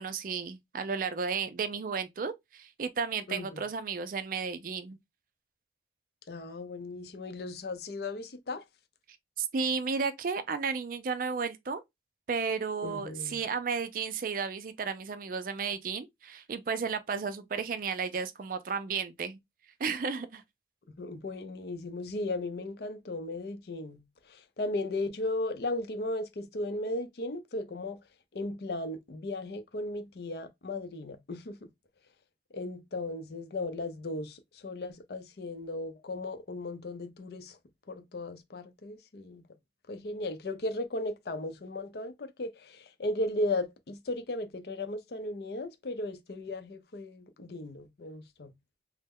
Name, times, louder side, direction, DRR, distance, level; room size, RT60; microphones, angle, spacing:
voice 1, 0.0-5.0 9.4-11.8 12.3-19.4 19.8-20.4, right 5 dB, 50° right, 0.4 m, -33 dB
voice 2, 3.3-3.7 6.3-8.6 12.8-13.4 21.0-28.0 28.3-31.7 32.5-37.6 37.9-39.4 39.9-48.5, left 2 dB, 60° left, 0.5 m, -36 dB
3.1 x 2.0 x 3.5 m
head